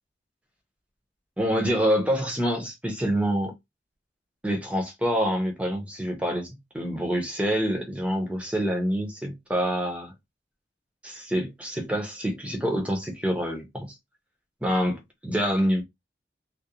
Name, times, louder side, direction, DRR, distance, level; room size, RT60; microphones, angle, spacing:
voice 1, 1.4-3.5 4.4-10.1 11.0-14.0 14.6-15.8, equal, 5° right, 0.6 m, -26 dB
2.4 x 2.0 x 2.8 m
head